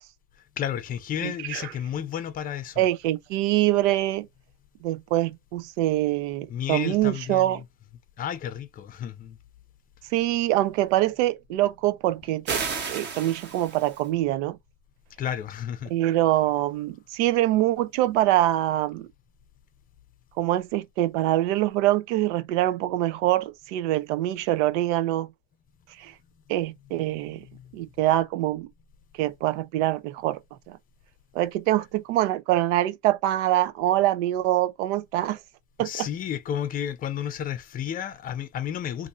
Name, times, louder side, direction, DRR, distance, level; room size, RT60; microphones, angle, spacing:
voice 1, 0.6-2.9 6.5-7.6 8.2-9.4 15.2-15.9 27.5-27.6 35.8-39.1, left 9 dB, 25° left, 0.5 m, -32 dB
voice 2, 1.2-1.7 2.8-4.3 4.8-7.6 10.1-14.6 15.9-19.1 20.4-25.3 26.0-26.1 26.5-27.4 27.7-28.7 29.2-30.4 30.7-30.8 31.3-35.4 35.8-36.1, right 15 dB, 85° right, 0.6 m, -24 dB
sound 1, 12.5-14.1, right 5 dB, 30° right, 1.0 m, -32 dB
2.6 x 2.6 x 4.1 m
cardioid pair, 145°, 34 cm